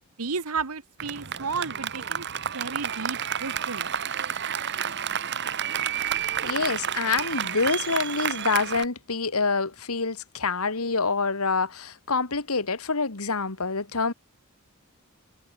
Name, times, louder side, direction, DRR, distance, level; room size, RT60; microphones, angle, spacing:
voice 1, 0.2-2.3 2.5-3.9, right 4 dB, 80° right, 1.4 m, -33 dB
Applause, 1.0-8.8, right 8 dB, 50° right, 1.5 m, -30 dB
voice 2, 6.4-14.1, left 4 dB, 80° left, 2.0 m, -26 dB
head